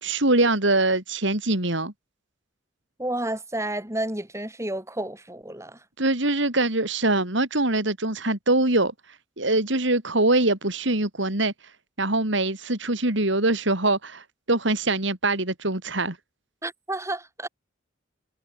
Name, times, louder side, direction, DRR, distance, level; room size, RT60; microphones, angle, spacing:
voice 1, 0.0-1.9 6.0-8.9 9.4-11.5 12.0-16.2, right 2 dB, 60° right, 3.4 m, -23 dB
voice 2, 3.0-5.8 16.6-17.5, right 1 dB, 15° right, 7.1 m, -31 dB
head